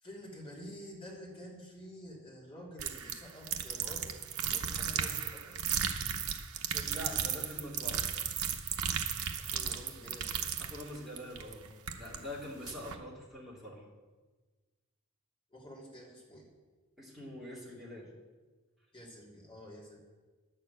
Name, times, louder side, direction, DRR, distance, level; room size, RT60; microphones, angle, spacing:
voice 1, 0.0-5.6 9.3-10.3 15.5-16.5 18.9-20.0, equal, 25° left, -4 dB, 2.8 m, -49 dB
sound 1, 2.8-12.2 12.6-13.0, right 8 dB, 70° right, 0.9 m, -35 dB
voice 2, 6.6-8.1 10.6-11.7 12.0-13.8 17.0-18.1, equal, ahead, -6 dB, 3.0 m, -44 dB
11.0 x 6.8 x 8.1 m, 1.3 s
head